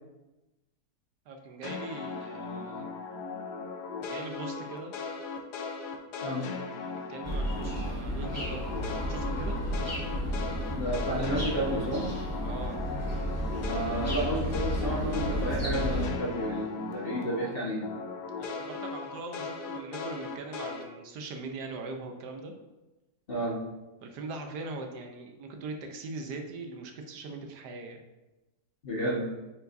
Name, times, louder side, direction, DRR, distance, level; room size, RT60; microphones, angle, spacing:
voice 1, 1.3-2.9 4.0-4.9 6.8-8.8 9.1-9.6 12.4-12.8 18.4-22.5 24.0-28.0, right 3 dB, 80° right, 4 dB, 1.4 m, -41 dB
sound 1, 1.6-7.9 8.2-17.5 17.8-20.8, left 4 dB, 80° left, 1.4 m, -38 dB
sound 2, 7.2-16.1, equal, 10° left, 1.5 m, -32 dB
voice 2, 10.7-12.0 13.6-17.8 23.3-23.6 28.8-29.3, right 1 dB, 35° left, -4 dB, 1.5 m, -31 dB
9.2 x 4.6 x 2.6 m, 1.0 s
omnidirectional pair, 1.7 m